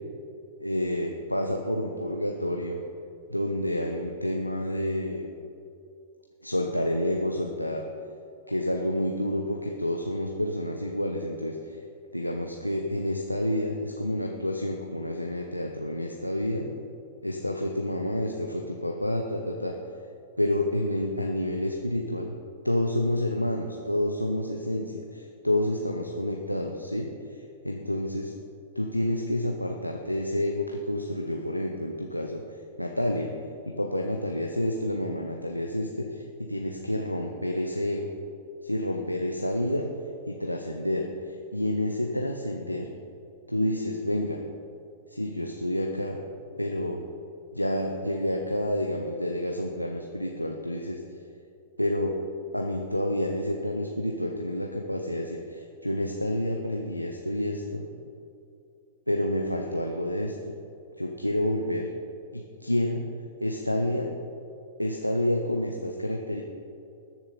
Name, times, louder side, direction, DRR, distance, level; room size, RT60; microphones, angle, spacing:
voice 1, 0.6-2.8 3.3-5.2 6.4-7.8 8.5-11.8 12.1-16.7 17.2-19.7 20.4-22.3 22.6-28.3 28.8-32.4 32.8-33.3 33.7-38.1 38.6-39.9 40.3-42.9 43.5-44.4 45.1-46.2 46.6-47.0 47.5-51.0 51.8-52.2 52.5-57.9 59.1-60.5 61.0-61.9 62.3-63.0 63.4-64.1 64.8-66.4, left 1 dB, 90° left, 2 dB, 0.8 m, -29 dB
20.0 x 7.2 x 4.0 m, 2.6 s
figure-of-eight pair, 100°, 0 cm